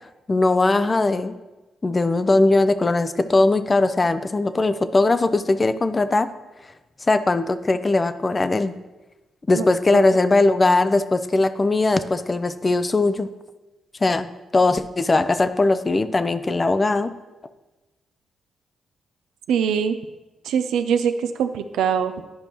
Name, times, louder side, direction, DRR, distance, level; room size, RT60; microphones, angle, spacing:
voice 1, 0.3-1.4 1.8-6.3 7.1-8.7 9.5-13.3 14.0-17.1, left 2 dB, 35° left, 12 dB, 0.5 m, -20 dB
voice 2, 9.5-10.0 19.5-20.0 20.4-22.1, right 7 dB, 75° right, 9 dB, 0.4 m, -23 dB
10.5 x 5.2 x 3.0 m, 1.1 s
hypercardioid pair, 45°, 0 cm